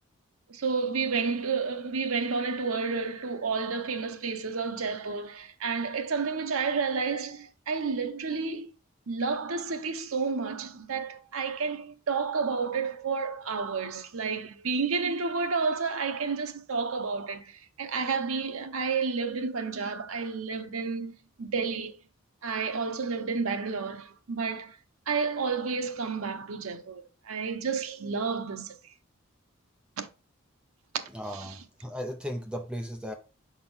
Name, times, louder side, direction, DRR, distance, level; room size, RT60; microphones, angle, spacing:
voice 1, 0.5-8.7 9.1-21.1 21.4-22.0 22.4-24.8 25.1-28.9 30.0-30.1 30.9-31.6, right 5 dB, 80° right, 0.8 m, -31 dB
voice 2, 31.1-33.1, equal, 5° right, 0.5 m, -36 dB
5.9 x 4.2 x 3.9 m
head